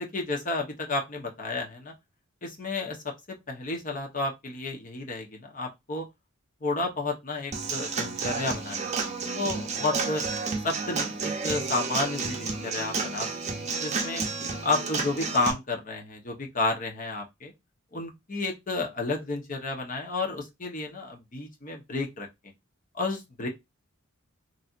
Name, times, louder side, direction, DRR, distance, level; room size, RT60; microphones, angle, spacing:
voice 1, 0.0-1.9 2.4-3.1 3.5-6.1 6.6-10.2 10.6-13.3 13.6-14.2 14.6-17.5 17.9-22.3 22.9-23.5, left 3 dB, 40° left, 0.9 m, -31 dB
Human voice / Acoustic guitar / Drum, 7.5-15.5, right 4 dB, 35° right, 0.6 m, -31 dB
3.2 x 2.7 x 2.4 m
head